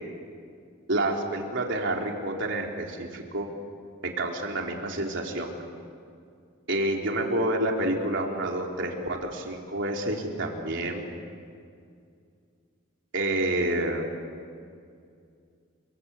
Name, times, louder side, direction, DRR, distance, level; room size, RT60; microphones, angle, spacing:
voice 1, 0.9-3.5 4.0-5.5 6.7-11.1 13.1-14.1, right 1 dB, 60° right, 1 dB, 3.8 m, -28 dB
29.5 x 24.0 x 8.4 m, 2.3 s
head